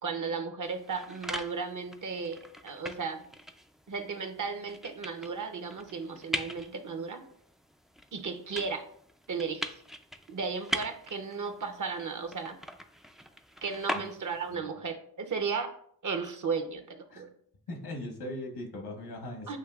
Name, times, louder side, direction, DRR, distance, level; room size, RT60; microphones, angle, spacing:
voice 1, 0.0-3.2 3.9-7.2 8.1-8.8 9.3-9.6 10.3-12.6 13.6-15.7 16.0-17.3 19.5-19.6, right 5 dB, 50° right, 6 dB, 0.8 m, -35 dB
sound 1, 0.6-14.6, equal, ahead, 0.3 m, -41 dB
voice 2, 17.7-19.6, left 1 dB, 80° left, 2 dB, 1.3 m, -39 dB
7.9 x 2.7 x 2.4 m, 0.63 s
cardioid pair, 55°, 39 cm